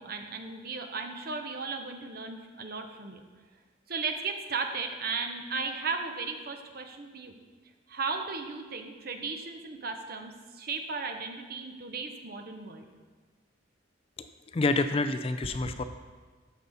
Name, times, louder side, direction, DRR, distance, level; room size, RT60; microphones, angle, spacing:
voice 1, 0.0-3.2 3.9-7.3 7.9-12.8 15.6-15.7, right 4 dB, 50° right, 5 dB, 0.8 m, -36 dB
voice 2, 14.2-15.8, left 3 dB, 30° left, 9 dB, 0.3 m, -28 dB
13.0 x 5.5 x 4.1 m, 1.4 s
head